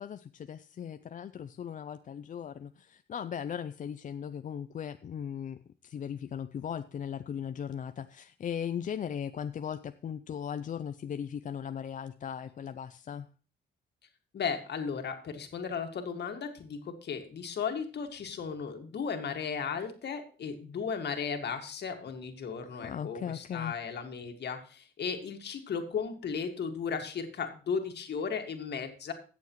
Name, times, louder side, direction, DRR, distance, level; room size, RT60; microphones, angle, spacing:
voice 1, 0.0-13.3 22.8-23.8, left 8 dB, 40° left, 11 dB, 0.4 m, -38 dB
voice 2, 14.3-29.1, left 6 dB, 60° left, 5 dB, 1.9 m, -35 dB
16.5 x 7.0 x 3.1 m, 0.37 s
cardioid pair, 90°, 20 cm